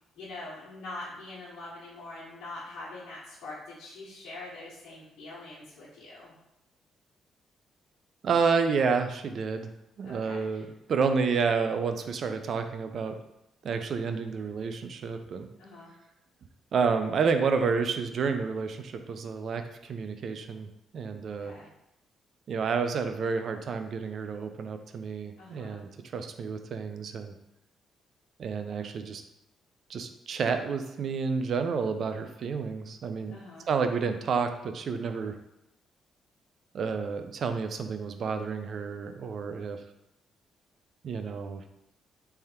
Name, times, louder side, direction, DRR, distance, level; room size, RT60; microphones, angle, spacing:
voice 1, 0.2-6.3 10.0-10.6 15.6-15.9 21.3-21.7 25.4-25.8 33.3-33.7, left 2 dB, 75° left, -8 dB, 1.2 m, -44 dB
voice 2, 8.2-9.7 10.0-13.2 13.6-15.5 16.7-21.5 22.5-27.3 28.4-29.2 29.9-33.4 33.7-35.4 36.7-39.8 41.0-41.6, right 5 dB, 60° right, 7 dB, 0.5 m, -30 dB
3.4 x 3.4 x 4.3 m, 0.85 s
cardioid pair, 90°, 0 cm